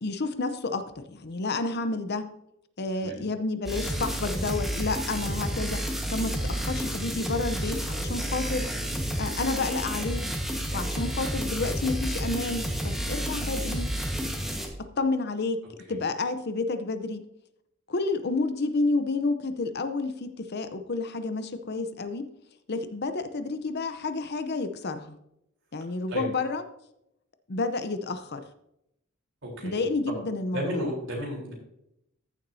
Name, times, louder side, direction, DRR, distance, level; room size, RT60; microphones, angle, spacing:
voice 1, 0.0-2.3 2.8-5.8 6.1-8.7 9.2-10.2 10.7-13.9 14.8-15.6 15.9-17.2 17.9-22.3 22.7-25.2 25.7-26.6 27.5-28.4 29.6-30.9, left 3 dB, 50° left, 9 dB, 0.7 m, -30 dB
sound 1, 3.7-14.7, equal, ahead, 1.4 m, -30 dB
voice 2, 29.4-29.8 30.5-31.5, equal, 60° right, -2 dB, 3.7 m, -33 dB
14.5 x 7.2 x 2.7 m, 0.80 s
head